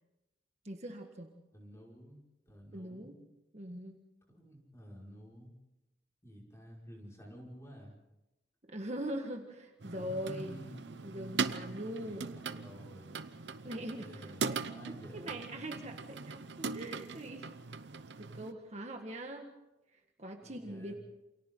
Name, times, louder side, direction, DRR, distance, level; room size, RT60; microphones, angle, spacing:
voice 1, 0.7-1.3 2.7-3.2 3.5-4.0 8.7-10.6 11.0-12.3 13.6-17.5 18.2-19.5 20.2-20.9, right 1 dB, 40° right, 3 dB, 1.8 m, -42 dB
voice 2, 1.5-3.2 4.3-5.5 6.2-8.0 10.0-11.0 12.0-13.2 13.7-15.5 20.4-20.9, equal, 15° left, -2 dB, 5.6 m, -52 dB
sound 1, 9.8-18.5, right 4 dB, 80° right, 0.9 m, -40 dB
28.5 x 28.0 x 3.9 m, 0.97 s
head